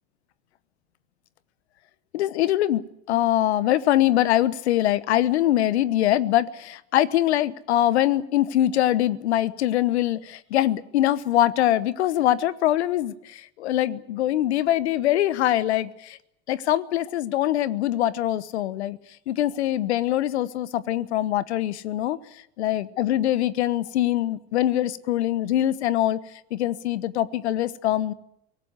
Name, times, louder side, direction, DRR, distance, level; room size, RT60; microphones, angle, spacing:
voice 1, 2.1-16.2 16.5-19.0 19.3-22.2 22.6-26.2 26.5-28.1, left 13 dB, 80° left, 18 dB, 1.1 m, -23 dB
24.0 x 18.0 x 8.2 m, 0.79 s
hypercardioid pair, 75°, 33 cm